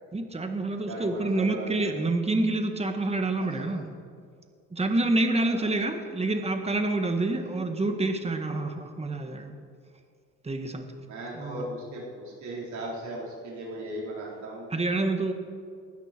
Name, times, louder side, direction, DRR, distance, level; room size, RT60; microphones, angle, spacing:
voice 1, 0.1-3.8 4.7-9.5 10.4-10.8 11.4-11.7 14.7-15.3, right 2 dB, 20° right, 6 dB, 1.6 m, -27 dB
voice 2, 0.9-1.9 3.4-3.8 5.3-5.8 7.4-7.6 11.1-14.7, right 1 dB, 70° right, -4 dB, 4.3 m, -38 dB
20.0 x 13.0 x 4.6 m, 2.2 s
cardioid pair, 90°, 30 cm